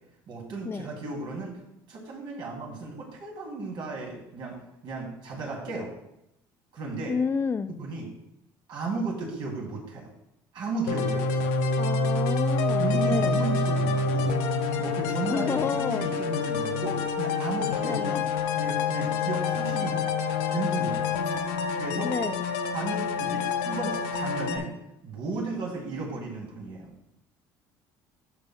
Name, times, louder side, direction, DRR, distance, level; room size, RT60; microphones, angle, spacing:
voice 1, 0.3-1.6 1.9-5.9 6.7-7.1 7.8-8.1 8.7-10.1 10.5-11.6 12.8-14.4 14.8-18.2 18.6-20.0 20.5-21.1 21.7-22.1 22.7-24.7 25.0-26.9, right 3 dB, 60° right, -1 dB, 2.6 m, -34 dB
voice 2, 7.1-7.8 11.8-13.4 15.3-16.1 17.8-18.2 22.0-22.4, left 5 dB, 25° left, 14 dB, 0.3 m, -30 dB
sound 1, 10.9-24.6, left 4 dB, 80° left, 0.7 m, -27 dB
11.5 x 6.1 x 2.2 m, 0.84 s
supercardioid pair, 85°, 9 cm